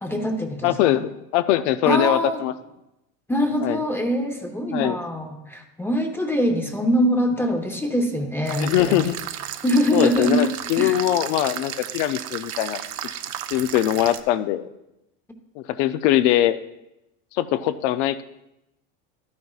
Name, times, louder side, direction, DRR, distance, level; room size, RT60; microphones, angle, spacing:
voice 1, 0.0-1.0 1.9-2.4 3.3-9.0 9.6-10.4 10.8-11.0, equal, 5° left, 3 dB, 0.7 m, -23 dB
voice 2, 0.6-2.5 3.6-3.8 4.7-5.0 8.6-9.2 9.9-12.8 13.5-14.7 15.6-16.6 17.3-18.2, left 13 dB, 75° left, 11 dB, 0.5 m, -22 dB
sound 1, 8.5-14.2, right 11 dB, 50° right, 0.7 m, -34 dB
12.0 x 9.5 x 2.4 m, 0.89 s
supercardioid pair, 140°, 35 cm